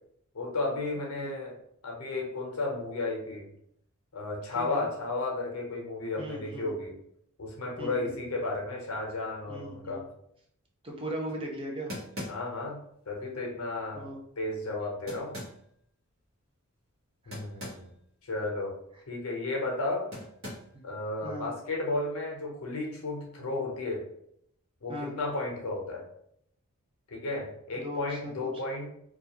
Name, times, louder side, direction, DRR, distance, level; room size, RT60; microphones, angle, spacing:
voice 1, 0.3-1.6 1.8-3.5 4.1-7.0 7.4-10.1 12.3-14.1 14.4-15.4 17.3-17.9 18.2-18.8 19.1-20.1 20.8-24.1 24.8-26.1 27.1-28.9, left 2 dB, 75° left, 0 dB, 0.7 m, -33 dB
voice 2, 1.0-1.3 4.5-4.9 6.2-6.7 7.8-8.1 9.5-10.0 10.8-11.9 13.9-14.2 21.2-21.5 24.9-25.2 27.7-28.5, equal, 25° right, 0 dB, 0.5 m, -38 dB
sound 1, 11.3-11.4 11.9-12.7 15.1-15.6 17.3-17.9 18.2-18.3 20.1-20.8, left 1 dB, 60° right, 0.9 m, -41 dB
2.3 x 2.3 x 2.8 m, 0.72 s
head